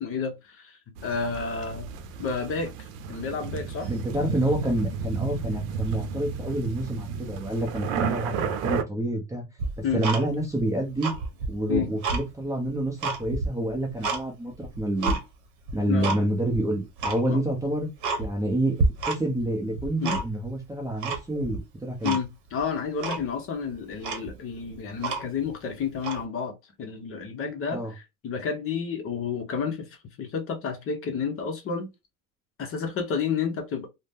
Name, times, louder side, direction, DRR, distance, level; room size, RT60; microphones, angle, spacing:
voice 1, 0.0-1.9 2.2-3.9 9.8-10.0 11.7-11.9 15.9-16.1 17.2-17.4 20.0-20.2 22.0-31.9 32.6-33.9, left 6 dB, 35° left, 0.7 m, -31 dB
sound 1, 1.0-8.8, right 6 dB, 85° right, 0.7 m, -32 dB
voice 2, 3.9-9.4 9.9-11.1 11.5-15.2 15.7-17.9 18.2-18.8 19.1-22.2 27.7-27.9, right 1 dB, 10° right, 0.5 m, -28 dB
Tick-tock, 9.6-10.6 10.9-12.2 12.7-14.2 14.6-15.2 15.7-16.2 16.5-16.6 17.0-17.2 17.6-17.7 18.0-18.5 18.8-19.4 19.7-20.5 21.0-21.6 22.0-22.2 22.6-22.7 23.0-23.3 23.7-23.8 24.0-25.5 26.0-26.2, right 3 dB, 50° right, 0.9 m, -29 dB
2.6 x 2.1 x 3.4 m
supercardioid pair, 125°, 39 cm